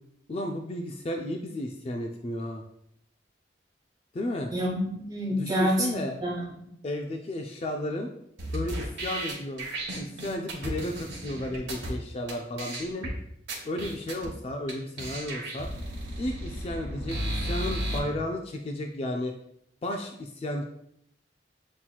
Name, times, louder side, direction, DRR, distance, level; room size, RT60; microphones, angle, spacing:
voice 1, 0.3-2.6 4.1-4.5 5.3-6.3 6.8-8.1 8.5-9.7 10.0-13.1 13.6-15.7 16.2-19.3 19.8-20.6, left 1 dB, 30° left, 3 dB, 0.3 m, -33 dB
voice 2, 4.5-6.7, equal, 20° right, -3 dB, 1.1 m, -28 dB
sound 1, 8.4-11.9 12.3-12.4 12.6-13.1 13.5-14.3 14.7-14.8 15.0-18.0, right 1 dB, 80° right, 1.1 m, -34 dB
7.2 x 2.9 x 2.3 m, 0.75 s
head